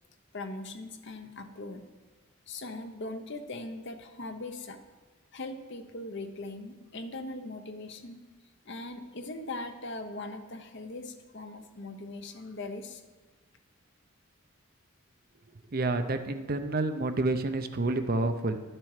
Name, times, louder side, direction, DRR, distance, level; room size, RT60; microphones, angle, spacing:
voice 1, 0.3-1.9 2.5-4.8 5.3-8.2 8.6-13.0, left 2 dB, 55° left, 7 dB, 0.9 m, -40 dB
voice 2, 15.7-18.6, right 2 dB, 45° right, 8 dB, 0.6 m, -29 dB
11.5 x 7.5 x 4.9 m, 1.3 s
head